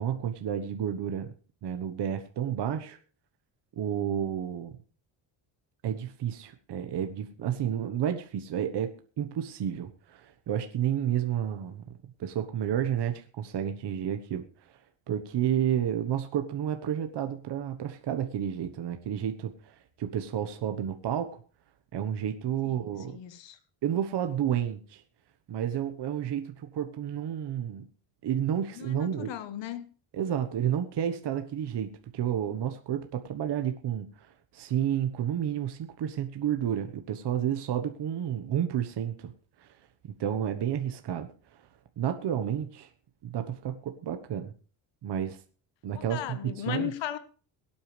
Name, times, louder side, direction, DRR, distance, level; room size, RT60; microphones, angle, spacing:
voice 1, 0.0-1.3 1.6-3.0 3.8-4.8 5.8-11.8 12.2-14.8 15.1-21.4 21.9-23.2 23.8-25.0 25.5-27.9 28.2-29.3 30.1-39.3 39.6-39.8 40.2-41.6 42.0-42.9 43.2-44.5 45.0-45.4 45.8-46.9, right 9 dB, 60° right, 1.3 m, -31 dB
voice 2, 22.6-23.6 28.7-29.8 45.9-47.2, left 11 dB, 70° left, 1.2 m, -36 dB
22.5 x 8.7 x 3.3 m
cardioid pair, 105°, 46 cm